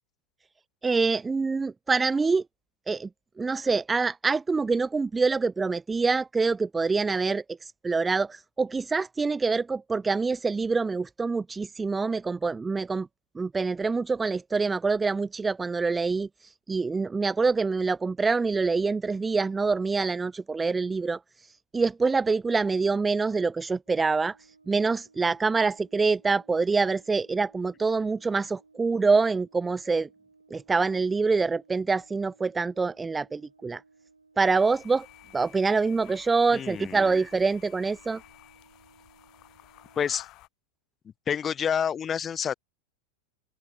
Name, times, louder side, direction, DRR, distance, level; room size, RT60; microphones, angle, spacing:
voice 1, 0.8-2.4 2.9-3.1 3.4-7.4 7.8-13.1 13.4-16.3 16.7-21.2 21.7-24.3 24.7-30.1 30.5-33.8 34.4-35.1 35.3-38.2, right 4 dB, 10° right, 0.5 m, -25 dB
Brass instrument, 23.8-40.2, right 4 dB, 80° right, 5.9 m, -60 dB
sound 1, 34.4-40.5, left 18 dB, 40° left, 5.1 m, -53 dB
voice 2, 36.5-37.1 40.0-40.3 41.3-42.5, left 8 dB, 20° left, 1.0 m, -28 dB
open air
figure-of-eight pair, 90°, 0 cm